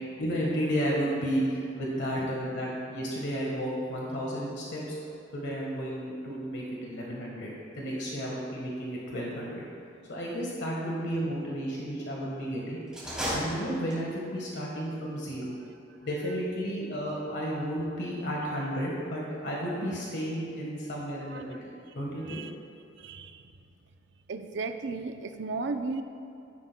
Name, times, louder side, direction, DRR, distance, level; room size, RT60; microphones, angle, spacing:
voice 1, 0.2-5.0 5.3-9.7 10.1-12.8 13.3-15.6 16.0-22.4, equal, 65° left, -4 dB, 1.4 m, -32 dB
sound 1, 12.9-14.3, equal, 5° right, 2.4 m, -34 dB
voice 2, 23.0-23.5 24.3-26.0, right 3 dB, 65° right, 7 dB, 0.6 m, -35 dB
13.5 x 11.0 x 2.2 m, 2.7 s
head